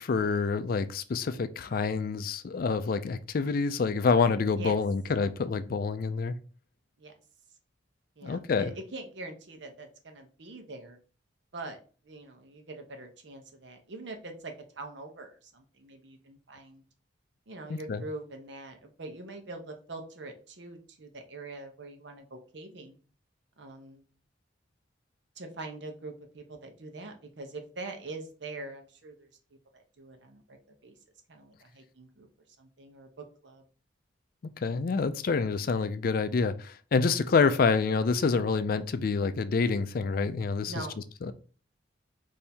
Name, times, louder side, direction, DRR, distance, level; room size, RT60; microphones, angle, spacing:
voice 1, 0.0-6.3 8.2-8.7 17.7-18.0 34.6-40.7 41.2-41.3, left 4 dB, 50° left, 0.4 m, -27 dB
voice 2, 8.2-11.0 11.5-16.8 17.5-23.0 23.6-24.0 25.4-29.3 29.7-30.9 31.3-32.3 32.6-33.6 40.7-41.0, right 2 dB, 70° right, 0.9 m, -43 dB
3.4 x 2.7 x 4.2 m
head